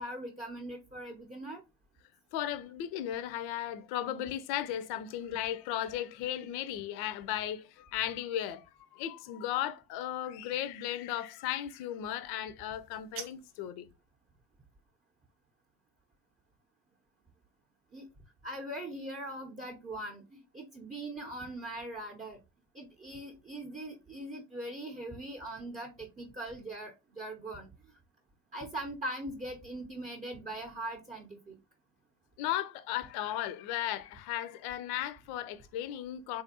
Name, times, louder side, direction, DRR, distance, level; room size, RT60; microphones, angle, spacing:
voice 1, 0.0-1.6 17.9-18.0 18.4-20.2 20.5-22.4 22.7-27.7 28.5-31.6, right 1 dB, 15° right, 0.7 m, -41 dB
voice 2, 2.3-8.7 8.9-13.9 32.4-36.4, left 12 dB, 55° left, 0.5 m, -36 dB
sound 1, 12.7-13.7, right 8 dB, 65° right, 0.7 m, -46 dB
3.4 x 2.4 x 2.7 m
hypercardioid pair, 60°, 47 cm